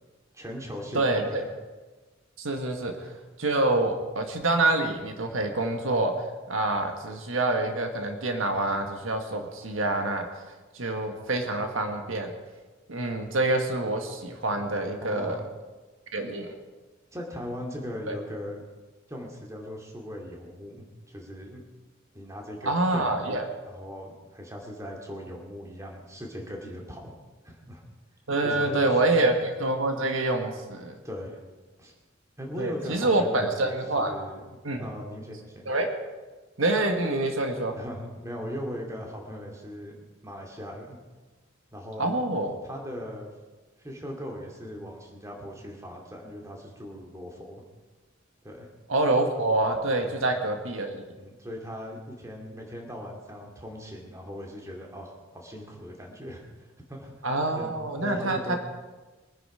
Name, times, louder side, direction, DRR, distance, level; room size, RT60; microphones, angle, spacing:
voice 1, 0.3-1.4 15.0-15.5 17.1-18.6 19.1-21.6 22.1-23.4 23.7-27.1 27.4-27.8 28.4-29.2 31.0-31.4 31.8-31.9 32.4-35.7 37.7-41.0 41.7-42.1 42.6-43.3 43.8-47.6 48.4-48.7 50.0-50.2 51.2-57.3 57.5-57.7 58.0-58.6, equal, 15° right, 0 dB, 2.5 m, -39 dB
voice 2, 0.9-1.4 2.4-3.1 3.4-6.1 6.5-10.3 10.7-12.3 12.9-15.4 16.1-16.6 18.1-18.2 22.7-23.5 28.3-31.0 32.6-34.2 34.6-34.9 35.7-35.9 36.6-37.8 42.0-42.5 48.9-51.0 57.2-58.6, right 2 dB, 85° right, 5 dB, 1.7 m, -26 dB
22.5 x 10.0 x 5.0 m, 1.3 s
head